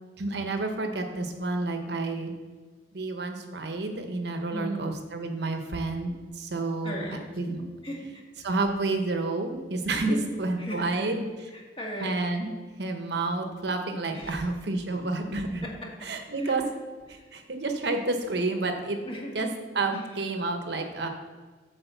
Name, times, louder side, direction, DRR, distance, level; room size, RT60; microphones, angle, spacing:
voice 1, 0.2-2.3 2.9-7.6 8.4-11.2 12.0-12.5 12.8-15.7 16.0-16.6 17.1-19.0 19.3-19.5 19.7-21.1, right 2 dB, 65° right, 5 dB, 0.9 m, -30 dB
voice 2, 4.5-4.9 6.8-7.2 7.8-8.2 10.0-11.1 11.5-12.1 14.1-14.5 15.6-16.1 16.4-16.5 17.1-17.3 19.0-19.3 19.9-20.0, equal, 30° left, -1 dB, 1.7 m, -36 dB
8.7 x 3.9 x 6.9 m, 1.4 s
head